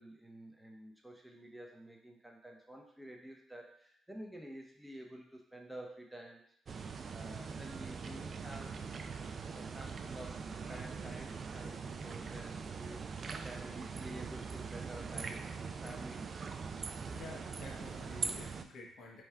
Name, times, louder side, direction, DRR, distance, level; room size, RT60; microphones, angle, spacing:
voice 1, 0.0-6.4 6.7-16.6, right 1 dB, 5° right, 0 dB, 0.6 m, -51 dB
sound 1, 6.7-18.6, right 5 dB, 45° right, 0.3 m, -42 dB
voice 2, 17.1-19.2, left 2 dB, 70° left, -2 dB, 1.0 m, -50 dB
3.5 x 2.3 x 4.3 m, 0.66 s
cardioid pair, 90°, 0 cm